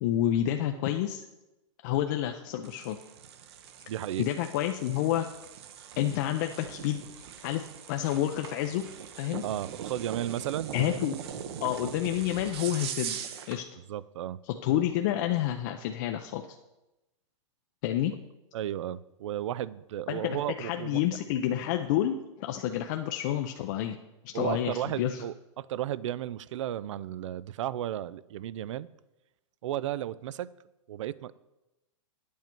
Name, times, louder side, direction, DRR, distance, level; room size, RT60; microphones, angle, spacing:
voice 1, 0.0-1.2 1.8-3.0 4.2-5.3 6.0-8.8 9.2-9.4 10.7-11.2 11.6-13.6 14.5-16.4 17.8-18.1 20.1-24.0 24.2-25.2, left 12 dB, 40° left, 5 dB, 0.5 m, -29 dB
sound 1, 2.6-13.6, right 8 dB, 55° right, 0.8 m, -41 dB
voice 2, 3.9-4.3 9.4-10.7 13.9-14.4 18.5-21.0 24.3-28.9 29.6-30.5 30.9-31.3, right 12 dB, 70° right, 19 dB, 0.4 m, -34 dB
9.0 x 8.4 x 4.4 m, 0.97 s
supercardioid pair, 160°, 16 cm